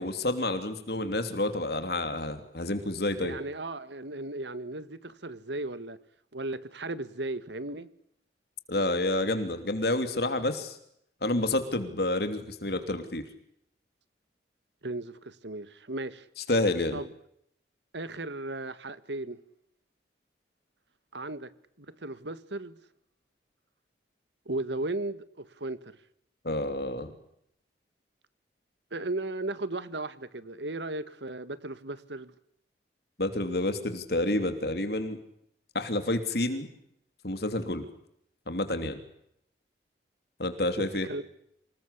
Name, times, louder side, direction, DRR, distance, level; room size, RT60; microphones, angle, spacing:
voice 1, 0.0-3.3 8.7-10.8 11.2-13.2 16.5-17.0 26.4-27.1 33.2-35.2 35.7-36.7 37.2-37.8 38.5-39.0 40.4-41.1, left 2 dB, 60° left, 3.1 m, -29 dB
voice 2, 3.2-6.0 6.3-7.9 14.8-16.3 16.9-17.1 17.9-19.4 21.1-21.5 21.8-22.8 24.5-26.0 28.9-32.3 40.8-41.3, right 2 dB, 80° right, 1.8 m, -36 dB
27.0 x 20.5 x 8.4 m
head